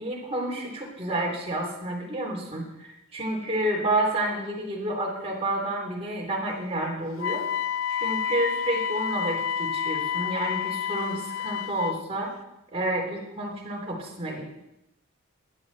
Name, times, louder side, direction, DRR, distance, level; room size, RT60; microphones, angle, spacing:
voice 1, 0.0-7.4 8.0-12.3 12.7-14.4, right 1 dB, 30° right, -2 dB, 3.4 m, -30 dB
Wind instrument woodwind instrument, 7.2-12.0, left 8 dB, 70° left, 0.5 m, -29 dB
15.5 x 11.0 x 4.2 m, 0.90 s
head